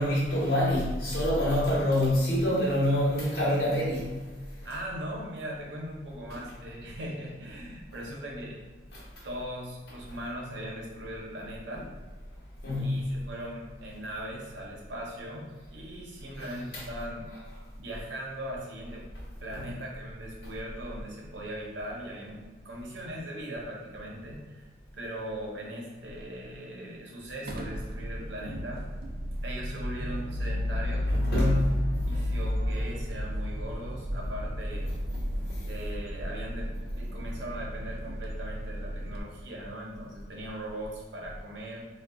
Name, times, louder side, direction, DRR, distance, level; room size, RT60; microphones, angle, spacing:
voice 1, 0.0-4.1 8.9-9.0 12.6-13.1 16.4-16.5 16.7-16.8 19.5-19.6 31.1-31.7, left 1 dB, 55° left, -7 dB, 1.0 m, -26 dB
voice 2, 4.6-8.6 9.2-11.9 12.8-17.3 17.8-19.1 19.4-24.7 24.9-28.9 29.4-31.7 32.1-34.9 35.6-41.8, right 1 dB, 75° right, -2 dB, 0.7 m, -39 dB
sound 1, 27.5-39.2, equal, 50° right, 0.3 m, -32 dB
3.6 x 2.2 x 2.3 m, 1.3 s
head